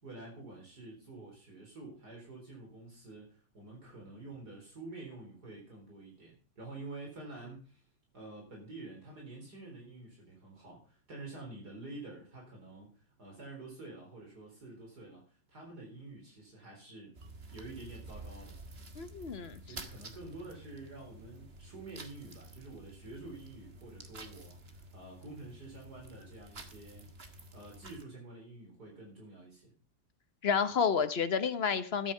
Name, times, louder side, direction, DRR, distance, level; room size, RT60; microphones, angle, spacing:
voice 1, 0.0-7.8 8.1-17.1 17.5-18.6 19.6-27.1 27.5-29.7, right 2 dB, 60° right, -1 dB, 4.5 m, -48 dB
sound 1, 17.1-28.0, right 2 dB, 35° right, 1.7 m, -50 dB
voice 2, 19.0-19.6 30.4-32.1, left 6 dB, 45° left, 11 dB, 0.9 m, -30 dB
13.5 x 9.1 x 5.5 m, 0.38 s
omnidirectional pair, 2.0 m